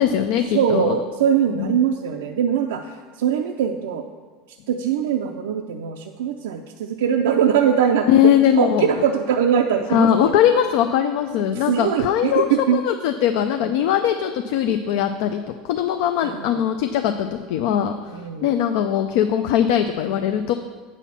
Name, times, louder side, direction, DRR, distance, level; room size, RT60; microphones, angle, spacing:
voice 1, 0.0-0.9 1.6-1.7 8.1-8.9 9.9-18.1 18.4-20.5, left 9 dB, 70° left, 7 dB, 0.4 m, -20 dB
voice 2, 0.5-4.1 4.7-8.1 8.6-10.3 11.5-12.8 16.2-16.6 18.1-18.5, right 8 dB, 85° right, 4 dB, 0.4 m, -22 dB
8.2 x 4.2 x 7.0 m, 1.5 s
supercardioid pair, 120°, 0 cm